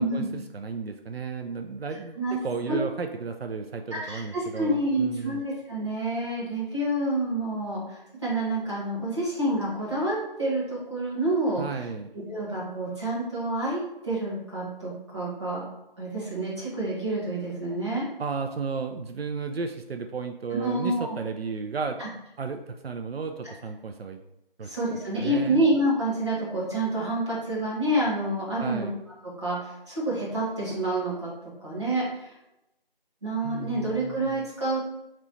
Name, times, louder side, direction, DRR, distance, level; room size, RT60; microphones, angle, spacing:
voice 1, 0.0-5.4 11.6-12.1 18.2-22.0 22.4-24.2 24.6-24.7 25.2-25.6 28.6-28.9 33.4-34.4, right 5 dB, 85° right, 5 dB, 0.5 m, -34 dB
voice 2, 3.9-11.6 12.1-15.7 16.0-18.0 20.6-21.1 22.0-22.1 24.6-28.9 29.2-32.3 33.2-34.8, right 1 dB, 30° right, -8 dB, 1.2 m, -28 dB
3.0 x 3.0 x 4.1 m, 0.90 s
figure-of-eight pair, 175°, 30 cm